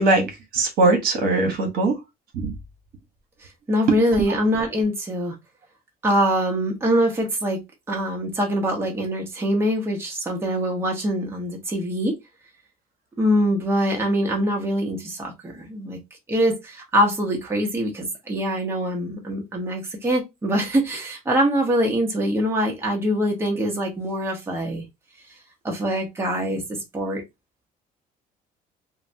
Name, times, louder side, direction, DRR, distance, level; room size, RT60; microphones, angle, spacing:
voice 1, 0.0-2.0 2.3-2.5, right 2 dB, 70° right, 0.9 m, -21 dB
voice 2, 3.7-5.4 6.0-7.6 7.9-12.2 13.2-16.0 16.3-24.9 25.6-27.2, equal, 15° right, 0.7 m, -23 dB
3.2 x 2.1 x 2.6 m
cardioid pair, 150°, 16 cm